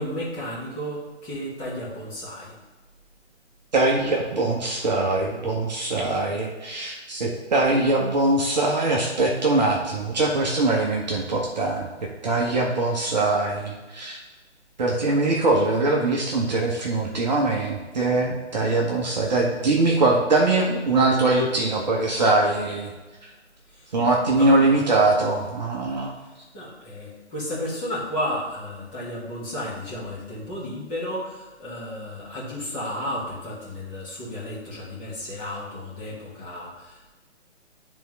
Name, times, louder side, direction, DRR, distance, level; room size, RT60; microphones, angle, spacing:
voice 1, 0.0-2.5 23.7-23.9 24.4-24.8 26.5-37.1, equal, 15° left, -8 dB, 1.6 m, -33 dB
voice 2, 3.7-11.9 12.2-14.2 14.8-22.9 23.9-26.1, right 2 dB, 40° right, -2 dB, 1.0 m, -22 dB
10.5 x 3.5 x 3.2 m, 1.2 s
figure-of-eight pair, 135°, 35 cm